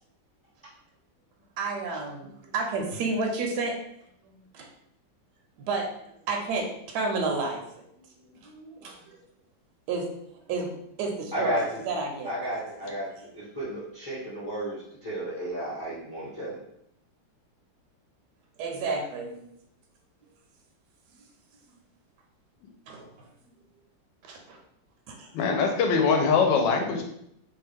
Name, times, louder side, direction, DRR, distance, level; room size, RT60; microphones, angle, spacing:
voice 1, 1.6-3.7 4.2-4.7 5.7-5.9 6.3-7.6 8.3-9.2 9.9-10.1 10.5-10.7 11.0-12.3 18.6-19.4 22.9-23.1 24.2-24.6 25.1-25.3, right 3 dB, 75° right, 1 dB, 1.0 m, -31 dB
voice 2, 11.3-11.8 12.2-16.6, right 1 dB, 15° left, -8 dB, 0.7 m, -33 dB
voice 3, 25.3-27.0, left 5 dB, 80° left, 3 dB, 1.2 m, -22 dB
3.1 x 2.2 x 3.3 m, 0.75 s
omnidirectional pair, 2.0 m